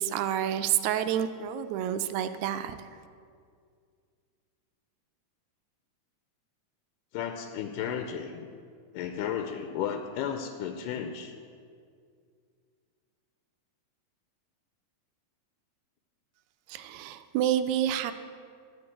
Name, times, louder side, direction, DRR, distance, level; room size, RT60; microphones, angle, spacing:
voice 1, 0.0-2.8 16.7-18.1, right 10 dB, 80° right, 10 dB, 1.7 m, -29 dB
voice 2, 7.1-8.5 8.9-11.3, left 8 dB, 90° left, 6 dB, 2.2 m, -34 dB
13.5 x 4.6 x 8.7 m, 2.2 s
omnidirectional pair, 3.7 m